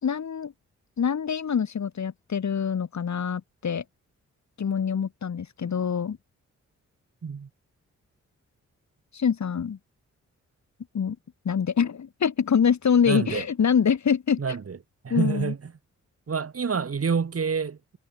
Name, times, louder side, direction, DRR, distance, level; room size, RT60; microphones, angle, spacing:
voice 1, 0.0-0.5 1.0-3.8 4.6-6.2 9.1-9.8 10.9-11.2 11.4-14.4 15.1-15.5, left 7 dB, 65° left, 3.0 m, -25 dB
voice 2, 13.1-13.5 14.4-14.8 15.0-15.7 16.3-18.0, right 6 dB, 50° right, 2.3 m, -28 dB
cardioid pair, 60°, 31 cm